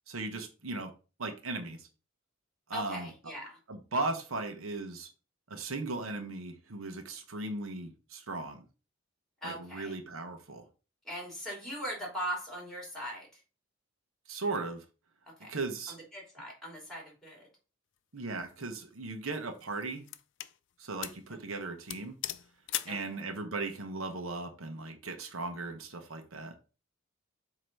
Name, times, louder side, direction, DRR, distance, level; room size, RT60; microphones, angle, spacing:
voice 1, 0.1-0.9 1.2-1.9 2.7-3.1 3.7-5.1 5.5-8.6 9.4-10.7 14.3-14.8 15.5-16.0 18.1-20.1 20.8-22.1 22.8-26.5, right 3 dB, 80° right, 1.1 m, -37 dB
voice 2, 2.7-3.6 9.4-10.0 11.0-13.4 15.4-15.5 15.9-17.4 21.3-21.7 22.9-23.2, equal, 5° left, 3.1 m, -40 dB
sound 1, 18.3-18.6 19.3-20.6 21.0-21.3 21.5-21.6 21.9-23.0, left 13 dB, 60° left, 0.5 m, -39 dB
7.7 x 3.0 x 5.4 m
head